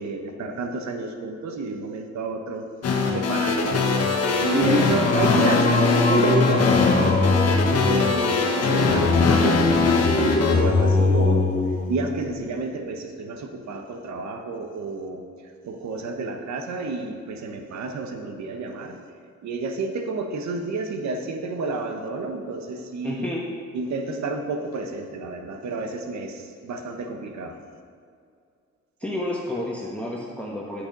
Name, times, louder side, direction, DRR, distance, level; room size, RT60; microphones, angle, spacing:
voice 1, 0.0-2.6 3.1-3.9 4.4-11.5 11.9-19.0 19.4-23.4 23.7-27.6, right 3 dB, 65° right, 5 dB, 1.2 m, -30 dB
sound 1, 2.8-10.6, left 4 dB, 55° left, 1.6 m, -22 dB
voice 2, 4.5-4.9 23.0-23.4 29.0-30.9, left 1 dB, 5° left, -5 dB, 1.3 m, -28 dB
Singing, 5.0-12.4, left 3 dB, 25° left, 0.9 m, -22 dB
8.6 x 8.1 x 5.4 m, 2.4 s
cardioid pair, 90°, 30 cm